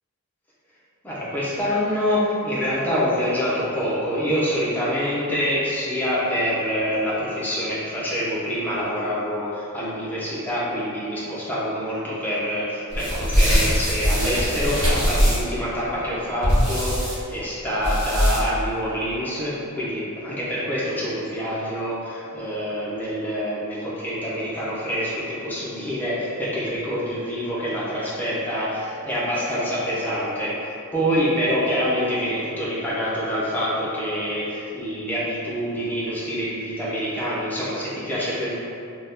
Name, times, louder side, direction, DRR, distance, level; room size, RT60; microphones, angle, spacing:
voice 1, 1.0-30.5 30.9-38.5, equal, 10° left, -9 dB, 0.7 m, -26 dB
sound 1, 12.9-15.6 16.4-17.1 17.8-18.6, equal, 60° right, 1.0 m, -21 dB
2.8 x 2.3 x 3.6 m, 2.6 s
head